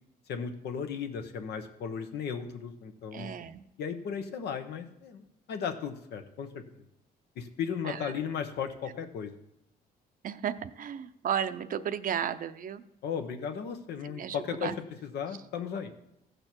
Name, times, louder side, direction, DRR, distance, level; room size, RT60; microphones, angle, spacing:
voice 1, 0.3-3.3 3.8-6.5 7.4-9.3 13.0-14.7 15.0-15.9, left 7 dB, 80° left, 7 dB, 1.1 m, -35 dB
voice 2, 3.1-3.6 7.8-8.2 10.2-12.8 14.0-14.7, right 9 dB, 55° right, 12 dB, 0.6 m, -34 dB
15.0 x 6.7 x 4.5 m, 0.84 s
cardioid pair, 100°, 17 cm